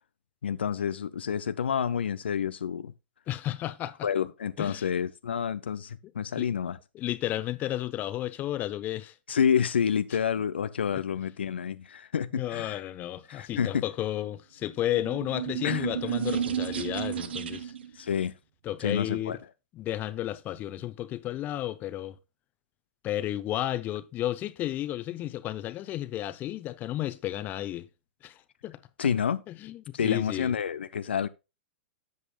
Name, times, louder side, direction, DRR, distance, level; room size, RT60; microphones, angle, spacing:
voice 1, 0.4-2.9 4.0-6.8 9.3-12.8 13.3-13.8 15.6-15.9 18.0-18.3 18.8-19.4 29.0-29.4 30.0-31.3, left 7 dB, 70° left, 0.6 m, -29 dB
voice 2, 3.3-4.1 4.6-4.9 6.4-6.5 6.9-9.1 10.9-11.0 12.3-17.7 18.6-19.4 19.7-22.2 23.0-27.9 28.2-28.8 29.5-30.5, left 13 dB, 30° left, 0.9 m, -33 dB
sound 1, 14.9-17.9, right 8 dB, 65° right, 0.9 m, -32 dB
13.0 x 8.0 x 2.3 m
figure-of-eight pair, 105°, 6 cm